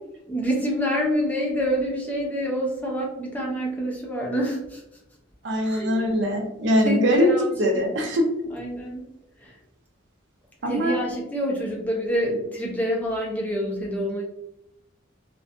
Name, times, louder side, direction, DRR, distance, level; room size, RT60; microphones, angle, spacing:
voice 1, 0.3-4.8 5.6-6.2 6.8-7.5 7.7-7.9 8.5-9.0 9.4-9.6 10.7-14.2, equal, 10° left, -2 dB, 0.4 m, -27 dB
voice 2, 5.4-7.3 7.6-8.2 10.6-11.0, equal, 60° right, 2 dB, 0.5 m, -22 dB
2.5 x 2.3 x 2.4 m, 0.86 s
head